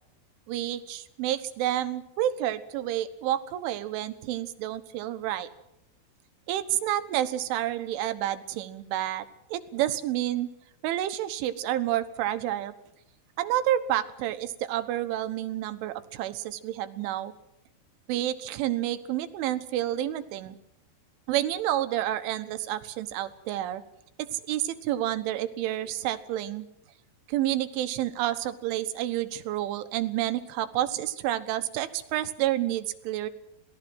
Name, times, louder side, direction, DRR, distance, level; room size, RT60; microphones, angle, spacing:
voice 1, 0.5-5.5 6.5-10.5 10.8-12.7 13.4-17.3 18.1-20.6 21.3-23.8 24.2-26.7 27.3-33.3, right 13 dB, 90° right, 11 dB, 3.7 m, -29 dB
27.0 x 19.0 x 6.2 m, 0.81 s
omnidirectional pair, 5.4 m